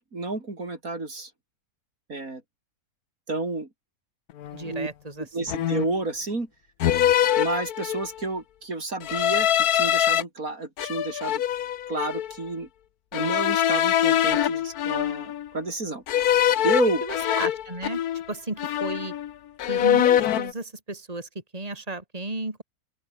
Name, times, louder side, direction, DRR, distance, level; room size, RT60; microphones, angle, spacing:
voice 1, 0.1-1.3 2.1-2.4 3.3-3.7 4.6-4.9 5.2-6.5 7.4-11.4 11.9-12.7 13.1-16.4 16.6-17.0, right 2 dB, 65° right, 4.5 m, -30 dB
sound 1, 4.4-4.6 5.5-6.0 6.8-8.2 9.0-10.2 10.8-12.3 13.1-15.5 16.1-18.3 18.6-19.3 19.6-20.5, left 11 dB, 75° left, 1.4 m, -24 dB
voice 2, 4.5-5.6 17.0-18.0 18.3-19.1 19.7-22.6, right 2 dB, 25° right, 3.6 m, -34 dB
open air
omnidirectional pair, 1.6 m